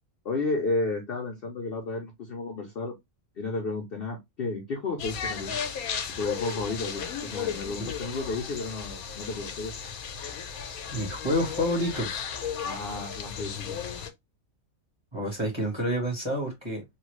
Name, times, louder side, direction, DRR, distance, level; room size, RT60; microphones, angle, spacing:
voice 1, 0.2-2.9 3.4-5.5 6.2-10.0 12.6-13.8, left 3 dB, 55° left, 0.7 m, -32 dB
sound 1, 5.0-14.1, left 7 dB, 85° left, 1.1 m, -35 dB
voice 2, 10.9-12.2 15.1-16.8, equal, 20° right, 1.3 m, -28 dB
3.3 x 2.3 x 3.0 m
omnidirectional pair, 1.5 m